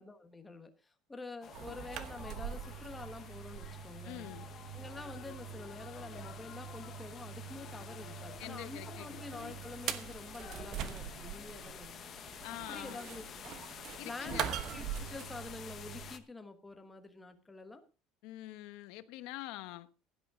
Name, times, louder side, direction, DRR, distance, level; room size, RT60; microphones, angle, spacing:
voice 1, 0.0-4.3 4.7-11.9 12.7-13.6 14.0-17.8, left 3 dB, 10° left, 1.3 m, -47 dB
sound 1, 1.4-16.2, left 8 dB, 30° left, 1.0 m, -50 dB
sound 2, 1.5-16.1, right 9 dB, 40° right, 1.1 m, -43 dB
voice 2, 4.0-4.5 8.4-9.6 12.4-13.0 14.0-14.5 18.2-19.9, left 17 dB, 60° left, 1.0 m, -45 dB
16.5 x 11.0 x 3.7 m
cardioid pair, 180°, 0 cm